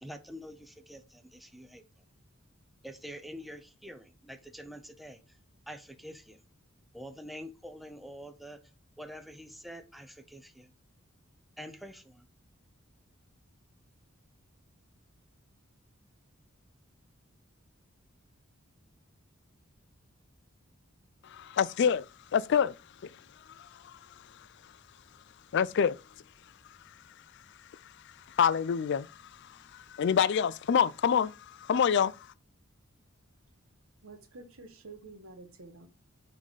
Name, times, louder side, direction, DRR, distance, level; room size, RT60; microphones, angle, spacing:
voice 1, 0.0-1.8 2.8-5.4 5.7-6.4 6.9-8.6 9.0-10.7 11.6-12.3, equal, ahead, 0.6 m, -46 dB
voice 2, 21.2-24.7 25.5-32.3, left 7 dB, 55° left, 0.3 m, -29 dB
voice 3, 34.0-35.9, right 3 dB, 85° right, 1.2 m, -49 dB
5.6 x 3.8 x 4.8 m
head